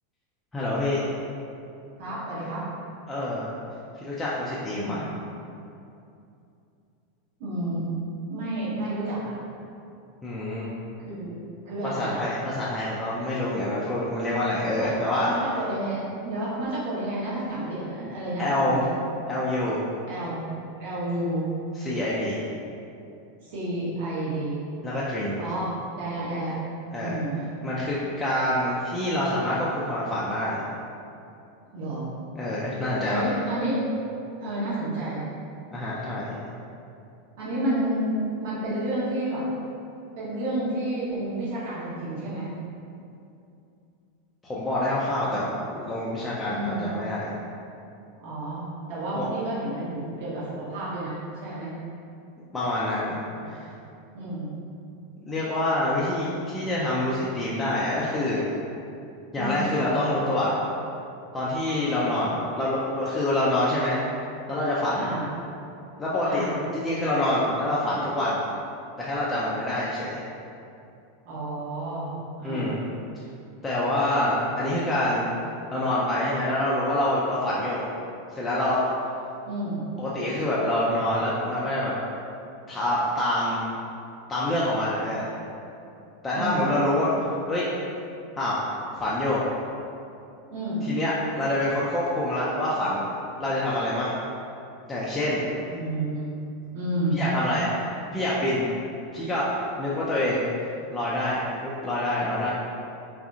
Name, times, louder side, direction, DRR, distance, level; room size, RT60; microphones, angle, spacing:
voice 1, 0.5-1.0 3.1-3.5 4.0-5.0 10.2-10.7 11.8-15.3 18.4-18.8 19.3-19.8 21.8-22.4 24.8-25.4 26.9-27.2 27.6-30.7 32.4-33.3 35.7-36.4 44.4-47.3 49.1-49.3 52.5-53.2 53.5-53.7 55.2-58.5 59.3-60.6 61.3-64.0 64.5-65.1 66.0-66.5 66.7-68.4 69.0-70.2 72.4-72.8 73.6-75.2 75.7-77.9 78.3-78.8 80.0-81.9 82.7-83.7 84.3-85.3 86.2-87.7 88.4-88.6 89.0-89.4 90.9-93.1 93.4-94.2 94.9-95.4 97.2-98.6 99.1-100.4 100.9-102.5, left 1 dB, 15° left, -8 dB, 0.4 m, -26 dB
voice 2, 2.0-2.7 4.5-5.0 7.4-7.9 8.3-9.3 11.0-12.2 14.7-14.9 15.2-16.0 16.2-18.9 20.0-20.4 20.8-21.5 23.4-24.7 25.4-26.5 27.0-27.4 31.7-32.1 33.0-33.8 34.4-35.3 37.4-38.1 38.4-39.4 40.1-42.5 45.2-45.3 46.5-46.9 48.2-51.7 53.4-53.5 54.1-54.6 59.3-59.7 64.9-65.3 66.2-66.6 71.2-72.7 79.5-79.8 86.3-86.7 90.5-90.8 95.7-96.3 96.7-97.2, right 1 dB, 55° right, -10 dB, 0.8 m, -30 dB
3.5 x 2.4 x 2.5 m, 2.6 s
figure-of-eight pair, 85°, 0 cm